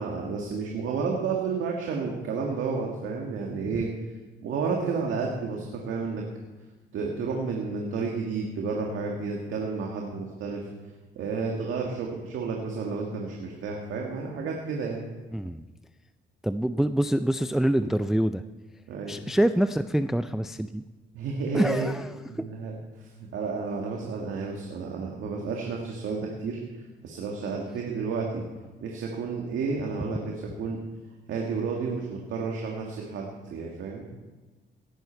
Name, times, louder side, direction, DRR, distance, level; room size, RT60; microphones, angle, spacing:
voice 1, 0.0-3.9 4.4-6.2 6.9-10.6 11.2-15.0 18.9-19.1 21.1-21.9 22.3-22.8 23.2-26.6 27.0-28.4 28.8-30.8 31.3-34.1, right 4 dB, 80° right, -1 dB, 1.9 m, -31 dB
voice 2, 15.3-15.6 16.4-18.4 19.1-20.8 21.5-22.5, right 1 dB, ahead, 11 dB, 0.4 m, -26 dB
17.5 x 10.5 x 4.5 m, 1.2 s
cardioid pair, 90°, 20 cm